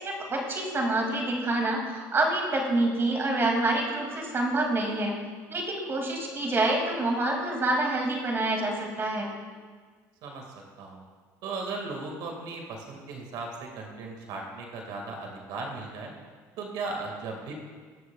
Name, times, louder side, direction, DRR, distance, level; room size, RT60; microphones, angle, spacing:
voice 1, 0.0-5.2 5.5-9.3, right 2 dB, 35° right, 0 dB, 2.4 m, -27 dB
voice 2, 10.2-11.0 11.4-16.1 16.6-17.5, right 3 dB, 70° right, 1 dB, 1.9 m, -37 dB
18.5 x 6.7 x 2.3 m, 1.5 s
supercardioid pair, 85°, 7 cm